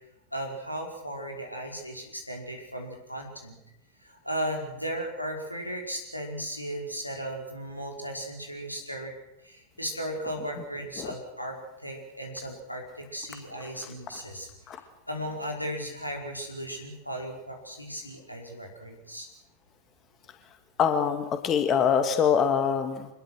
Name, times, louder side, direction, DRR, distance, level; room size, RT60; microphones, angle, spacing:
voice 1, 0.3-3.6 4.0-9.1 9.4-14.5 15.1-19.3, equal, 90° left, 1 dB, 5.2 m, -36 dB
voice 2, 20.8-23.1, left 7 dB, 30° left, 7 dB, 2.1 m, -24 dB
25.5 x 21.0 x 6.4 m, 0.86 s
figure-of-eight pair, 90°, 0 cm